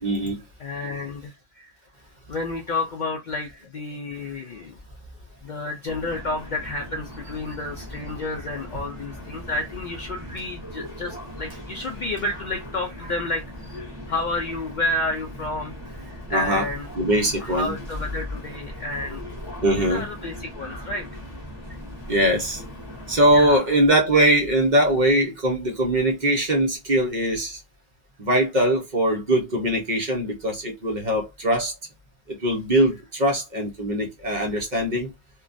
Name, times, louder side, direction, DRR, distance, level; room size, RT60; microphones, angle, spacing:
voice 1, 0.0-0.4 16.3-16.7 17.0-17.7 19.6-20.0 22.1-22.6 23.1-27.6 28.2-31.7 32.3-35.1, right 1 dB, 45° right, 0.9 m, -21 dB
voice 2, 0.6-1.7 2.3-4.8 5.4-16.9 17.4-19.2 19.7-21.1 23.3-23.6, left 2 dB, 60° left, 0.5 m, -30 dB
sound 1, 5.9-23.6, left 1 dB, 25° right, 1.2 m, -39 dB
2.9 x 2.3 x 2.5 m
omnidirectional pair, 1.2 m